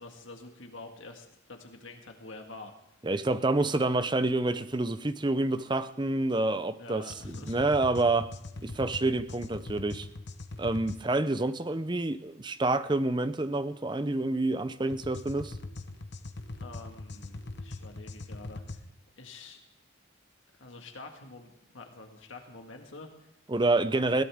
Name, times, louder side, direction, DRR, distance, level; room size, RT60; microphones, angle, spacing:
voice 1, 0.0-2.8 3.6-3.8 6.8-7.6 16.6-18.9 19.2-19.6 20.6-23.3 23.9-24.2, left 3 dB, 70° left, 4 dB, 1.8 m, -47 dB
voice 2, 3.0-8.3 8.6-10.1 10.6-15.5 23.5-24.2, right 2 dB, 20° right, 12 dB, 0.6 m, -28 dB
sound 1, 7.1-11.0 14.9-18.8, left 2 dB, 55° left, 0.9 m, -41 dB
21.0 x 16.0 x 3.6 m, 0.87 s
head